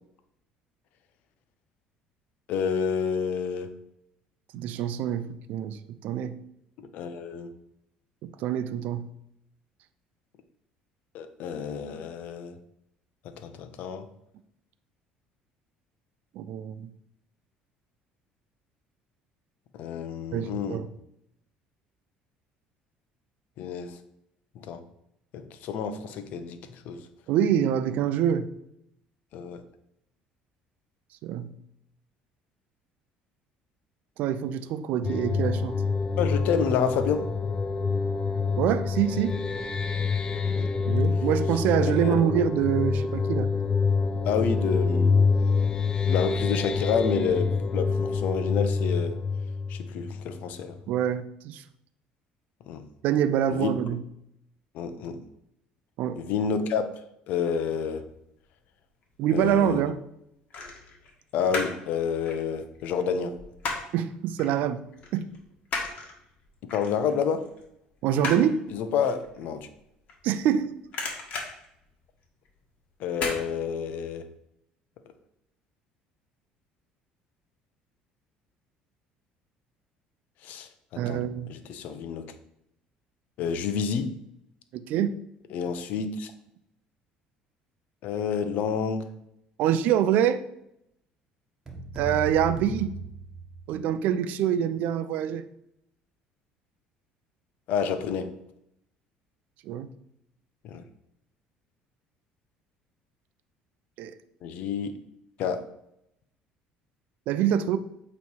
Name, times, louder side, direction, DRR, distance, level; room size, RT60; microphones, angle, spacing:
voice 1, 2.5-3.7 6.8-7.5 11.1-12.6 13.2-14.1 19.7-20.8 23.6-24.0 24.7-24.8 25.3-27.0 29.3-29.6 36.2-37.3 40.4-40.7 41.8-42.2 44.2-45.2 46.0-49.2 49.7-50.8 52.7-52.8 53.5-53.7 54.7-55.2 56.2-56.9 57.3-58.0 59.3-59.8 61.3-63.4 66.6-67.5 68.7-69.7 73.0-74.3 80.4-81.2 81.5-82.3 83.4-84.1 85.5-86.3 88.0-89.1 97.7-98.3 100.6-100.8 104.4-105.0 105.4-105.6, left 6 dB, 70° left, 0.7 m, -29 dB
voice 2, 4.5-6.4 8.2-9.1 16.4-16.9 20.3-20.9 27.3-28.5 31.2-31.5 34.2-35.8 38.6-39.4 40.9-43.5 50.9-51.6 53.0-54.0 56.0-56.2 59.2-60.0 63.9-64.8 65.1-65.3 68.0-68.6 70.2-70.7 81.0-81.5 84.7-85.1 89.6-90.4 92.0-92.9 93.7-95.4 99.6-99.9 104.0-104.1 107.3-107.8, right 9 dB, 70° right, 0.5 m, -25 dB
sound 1, 35.0-50.5, left 4 dB, 25° left, 0.5 m, -26 dB
sound 2, 59.0-59.6 60.5-61.9 62.1-64.0 64.4-64.6 64.9-70.5 70.8-72.5 73.1-73.4 73.8-73.9, left 3 dB, 50° left, 1.6 m, -35 dB
sound 3, 91.7-93.9, right 3 dB, 25° right, 1.4 m, -37 dB
8.2 x 3.2 x 4.6 m
cardioid pair, 120°, 3 cm